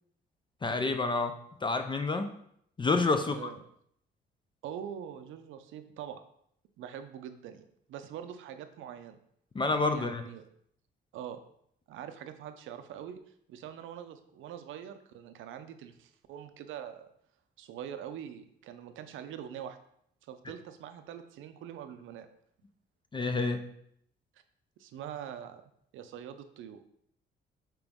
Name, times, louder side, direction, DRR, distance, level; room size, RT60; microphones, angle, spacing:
voice 1, 0.6-2.3 2.8-3.5 9.5-10.3 23.1-23.7, left 3 dB, 25° left, 7 dB, 0.4 m, -29 dB
voice 2, 3.2-3.6 4.6-6.2 6.8-9.2 9.9-10.5 11.1-11.4 11.9-13.2 13.5-17.1 17.6-19.8 20.2-22.3 24.8-25.6 25.9-26.8, right 9 dB, 80° right, 9 dB, 0.5 m, -43 dB
4.9 x 3.0 x 3.5 m, 0.69 s
cardioid pair, 90°, 20 cm